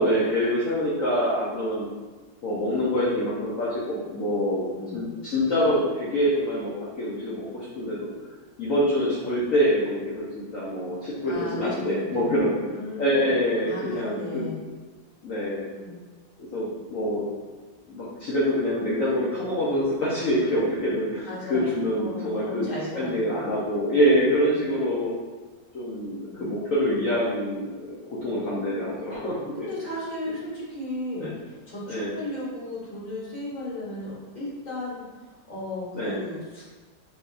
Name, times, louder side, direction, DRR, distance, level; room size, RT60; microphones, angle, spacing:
voice 1, 0.0-1.9 2.4-8.1 8.6-12.5 13.0-14.4 15.2-15.7 16.4-17.2 17.9-22.7 23.0-25.1 25.7-29.5 31.2-31.3 31.9-32.1 35.9-36.2, equal, 60° left, -7 dB, 0.9 m, -25 dB
voice 2, 4.7-5.1 11.3-12.2 12.7-13.3 13.6-14.7 15.7-16.0 21.3-21.7 21.9-23.4 26.3-26.5 29.5-36.6, left 1 dB, 30° left, -7 dB, 0.9 m, -35 dB
4.5 x 3.5 x 2.5 m, 1.3 s
omnidirectional pair, 2.0 m